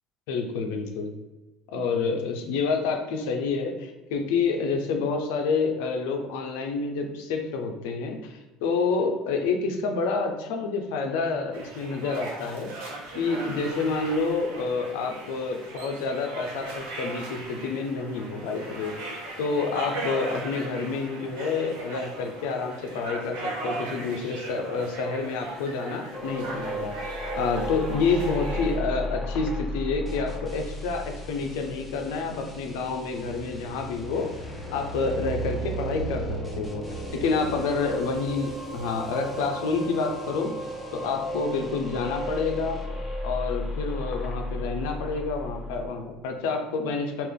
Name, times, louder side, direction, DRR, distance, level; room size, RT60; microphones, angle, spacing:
voice 1, 0.3-1.1 1.7-12.9 13.1-27.1 27.3-34.3 34.7-36.9 37.1-40.6 40.9-42.8 43.2-47.3, left 4 dB, 85° left, 4 dB, 0.6 m, -28 dB
sound 1, 11.5-28.8, right 2 dB, 85° right, 0.8 m, -38 dB
sound 2, 26.1-32.9 33.2-45.9, equal, 35° left, 0.9 m, -34 dB
sound 3, 30.1-43.1, equal, 5° left, 0.7 m, -47 dB
3.4 x 2.5 x 3.6 m, 1.1 s
supercardioid pair, 110°, 0 cm